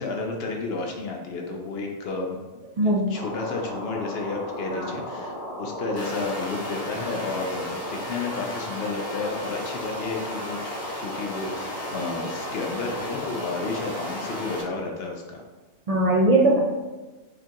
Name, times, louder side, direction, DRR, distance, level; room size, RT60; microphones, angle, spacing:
voice 1, 0.0-2.4 2.8-10.6 11.0-15.4, left 3 dB, 65° left, 2 dB, 0.8 m, -31 dB
voice 2, 2.8-3.1 4.7-4.9 15.9-16.6, right 2 dB, 55° right, -4 dB, 0.4 m, -20 dB
sound 1, 3.1-14.6, equal, 90° left, 1.7 m, -35 dB
sound 2, 6.0-14.6, left 1 dB, 15° left, 0.6 m, -38 dB
5.0 x 2.4 x 2.8 m, 1.2 s
omnidirectional pair, 1.2 m